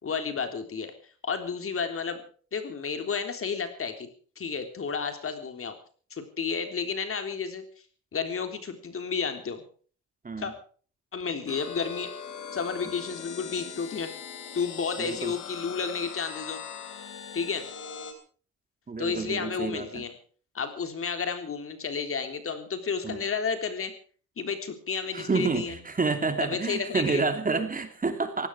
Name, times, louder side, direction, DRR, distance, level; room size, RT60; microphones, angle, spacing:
voice 1, 0.0-2.2 2.5-4.1 4.3-5.7 6.1-7.6 8.1-9.6 10.4-10.5 11.1-12.1 12.5-14.1 14.5-16.6 17.3-17.7 19.0-20.1 20.5-23.9 24.4-25.7 26.4-27.2, left 5 dB, 45° left, 7 dB, 3.6 m, -31 dB
sound 1, 11.5-18.1, left 7 dB, 80° left, 3.9 m, -40 dB
voice 2, 15.0-15.3 18.9-20.0 23.0-23.2 25.1-28.5, right 4 dB, 30° right, 7 dB, 3.0 m, -29 dB
18.0 x 16.5 x 4.8 m, 0.43 s
cardioid pair, 90°, 30 cm